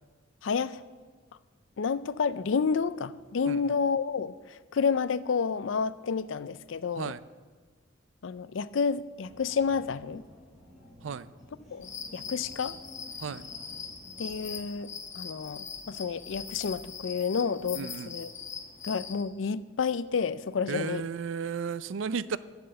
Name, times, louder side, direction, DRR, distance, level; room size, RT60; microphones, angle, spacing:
voice 1, 0.4-0.8 1.8-7.1 8.2-10.2 11.7-11.9 12.1-12.8 14.2-14.9 15.2-18.3 18.8-21.0, left 5 dB, 75° left, 16 dB, 0.5 m, -30 dB
sound 1, 9.2-14.6, equal, ahead, 4.0 m, -52 dB
sound 2, 11.8-19.2, left 6 dB, 40° left, 1.1 m, -41 dB
voice 2, 17.7-18.2 20.7-22.4, right 6 dB, 70° right, 16 dB, 0.4 m, -34 dB
10.5 x 8.1 x 7.6 m, 1.4 s
head